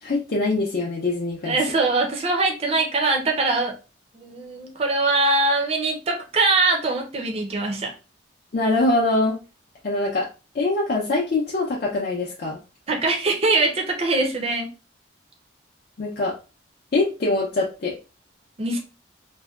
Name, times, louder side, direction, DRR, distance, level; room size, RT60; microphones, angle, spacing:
voice 1, 0.0-1.6 8.5-9.4 9.8-10.3 10.5-12.6 16.0-16.3 16.9-17.9, left 2 dB, 55° left, -4 dB, 0.5 m, -23 dB
voice 2, 1.4-3.7 4.1-7.9 12.9-14.7 18.6-18.8, right 2 dB, 35° right, 2 dB, 0.5 m, -22 dB
2.6 x 2.1 x 2.3 m, 0.32 s
head